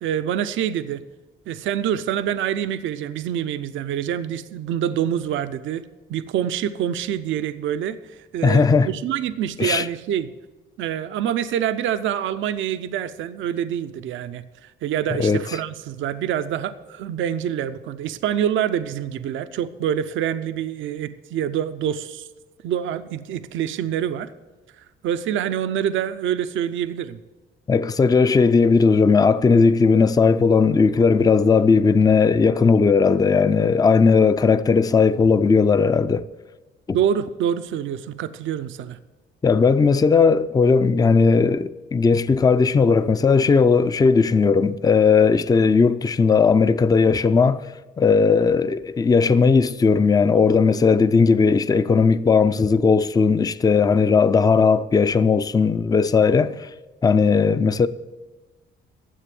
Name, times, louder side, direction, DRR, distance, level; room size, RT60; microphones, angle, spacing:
voice 1, 0.0-1.0 1.5-5.8 6.1-10.3 10.8-14.4 14.8-22.3 22.6-24.3 25.0-27.2 36.9-39.0, right 9 dB, 75° right, 0.5 m, -26 dB
voice 2, 8.4-8.9 9.6-9.9 15.1-15.4 27.7-36.3 39.4-56.7 57.0-57.9, left 5 dB, 20° left, 0.4 m, -17 dB
10.0 x 7.4 x 7.6 m
cardioid pair, 90°, 20 cm